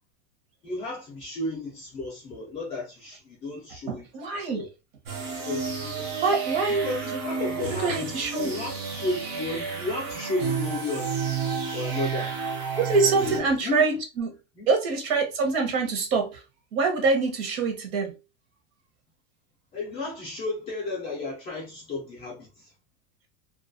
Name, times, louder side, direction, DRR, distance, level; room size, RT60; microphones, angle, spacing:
voice 1, 0.6-4.7 5.4-6.1 6.7-11.2 11.7-12.4 13.2-13.9 14.5-14.7 19.7-22.7, left 2 dB, 20° left, 0.4 m, -33 dB
voice 2, 3.9-4.6 6.2-6.9 7.8-8.5 12.7-14.3 14.7-16.4 16.7-18.1, right 4 dB, 60° right, 0.8 m, -25 dB
sound 1, 5.1-13.4, right 5 dB, 30° right, 0.5 m, -31 dB
2.3 x 2.1 x 2.5 m
supercardioid pair, 170°, 35 cm